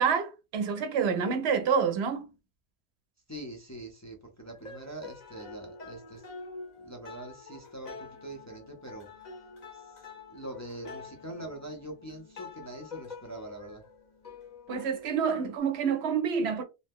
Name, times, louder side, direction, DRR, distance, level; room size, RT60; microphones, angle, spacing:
voice 1, 0.0-2.3 14.7-16.6, right 6 dB, 75° right, 0.8 m, -27 dB
voice 2, 3.3-6.2 6.8-9.3 9.7-10.0 10.3-13.8, right 1 dB, 20° left, 0.5 m, -43 dB
sound 1, 4.5-15.6, left 4 dB, 45° left, 0.8 m, -47 dB
2.7 x 2.0 x 3.5 m
omnidirectional pair, 1.1 m